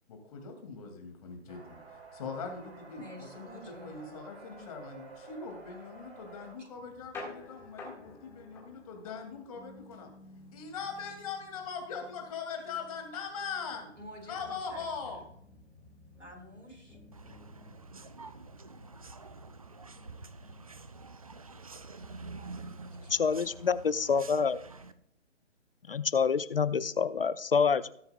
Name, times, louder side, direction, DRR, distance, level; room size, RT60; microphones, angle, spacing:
voice 1, 0.1-10.1 10.5-13.9 14.3-15.2, left 5 dB, 30° left, 3 dB, 2.3 m, -41 dB
sound 1, 1.5-6.5, right 3 dB, 60° right, 2.9 m, -51 dB
voice 2, 2.9-3.9 6.6-6.7 14.0-15.2 16.2-17.0 22.3-23.4, equal, 85° right, 1 dB, 4.6 m, -50 dB
sound 2, 6.7-22.9, left 2 dB, 5° left, 1.7 m, -53 dB
sound 3, 17.1-24.9, right 3 dB, 30° right, 0.4 m, -47 dB
voice 3, 23.1-24.6 25.9-27.9, left 6 dB, 50° left, 15 dB, 0.5 m, -27 dB
19.0 x 7.8 x 2.3 m, 0.71 s
figure-of-eight pair, 140°, 36 cm